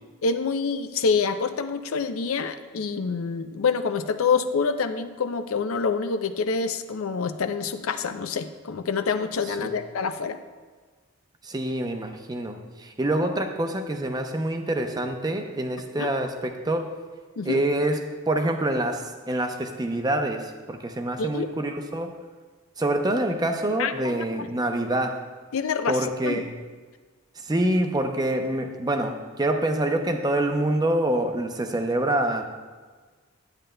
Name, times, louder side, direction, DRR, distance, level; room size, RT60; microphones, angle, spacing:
voice 1, 0.2-10.4 15.9-16.1 17.4-17.6 21.2-21.5 23.8-24.5 25.5-26.4, left 5 dB, 75° left, 9 dB, 0.5 m, -27 dB
voice 2, 11.4-16.9 17.4-18.0 18.3-22.1 22.8-25.2 25.9-26.5 27.4-32.4, right 1 dB, 20° right, 5 dB, 0.5 m, -26 dB
10.5 x 8.8 x 2.2 m, 1.4 s
head